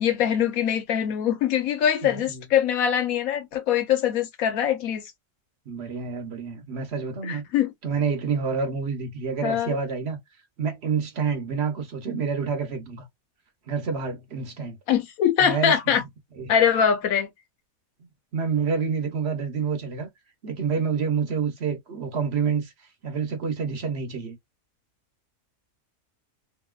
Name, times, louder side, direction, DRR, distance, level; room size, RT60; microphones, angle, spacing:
voice 1, 0.0-5.0 7.2-7.7 9.4-9.8 14.9-16.0 16.5-17.3, left 9 dB, 85° left, 1.1 m, -23 dB
voice 2, 2.0-2.4 5.7-7.4 7.8-10.2 10.6-13.0 13.7-14.8 15.4-15.9 16.4-16.5 18.3-20.1 20.4-22.7 23.0-24.4, right 5 dB, 55° right, 1.0 m, -28 dB
2.9 x 2.7 x 2.3 m
omnidirectional pair, 1.5 m